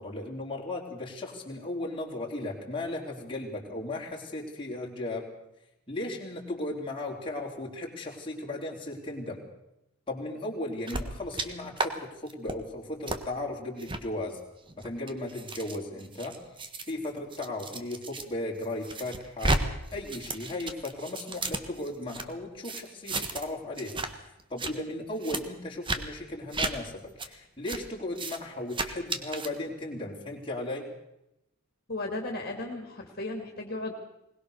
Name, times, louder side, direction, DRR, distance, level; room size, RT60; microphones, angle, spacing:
voice 1, 0.0-5.3 5.9-9.4 10.1-14.4 14.8-16.4 16.9-19.6 19.9-30.9, left 2 dB, 25° left, -2 dB, 3.8 m, -36 dB
sound 1, 10.9-11.5 11.8-11.9 12.3-12.6 13.1-13.2 13.8-14.0 14.7-18.2 18.6-19.6 19.9-22.2 22.6-23.5 23.8-24.1 24.4-24.7 25.2-25.4 25.8-26.0 26.5-26.7 27.2-27.3 27.7-27.8 28.1-28.4 28.7-29.5, right 2 dB, 20° right, 1.6 m, -33 dB
voice 2, 31.9-33.9, left 2 dB, 45° left, 2 dB, 3.0 m, -35 dB
21.0 x 20.5 x 6.7 m, 0.86 s
head